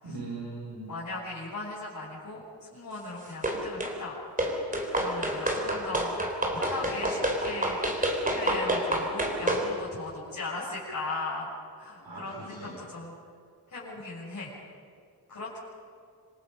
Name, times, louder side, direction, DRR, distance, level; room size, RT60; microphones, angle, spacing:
voice 1, 0.0-0.9 12.0-12.8, right 3 dB, 65° right, -4 dB, 5.4 m, -40 dB
voice 2, 0.9-4.2 5.0-6.1 6.5-11.5 11.8-13.1 13.7-14.6 15.3-15.6, left 3 dB, 50° left, -9 dB, 6.8 m, -38 dB
sound 1, 3.4-4.0 4.4-9.7, right 1 dB, 20° right, 3.6 m, -28 dB
27.0 x 26.0 x 5.5 m, 2.4 s
wide cardioid pair, 180°, 38 cm